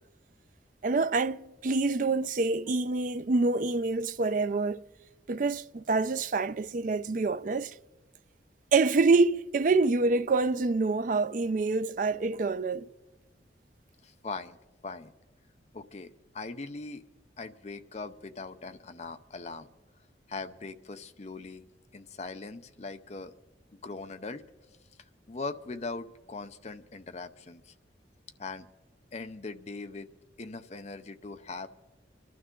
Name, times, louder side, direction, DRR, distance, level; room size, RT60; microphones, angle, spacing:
voice 1, 0.8-4.8 5.3-7.7 8.7-12.9, right 3 dB, 45° right, 0.4 m, -26 dB
voice 2, 14.0-14.6 14.8-15.1 15.7-17.0 17.4-19.7 20.3-21.6 21.9-23.3 23.7-24.4 25.3-27.7 28.4-28.7 29.1-30.1 30.4-31.7, left 3 dB, 35° left, 0.6 m, -40 dB
25.0 x 12.5 x 3.7 m
head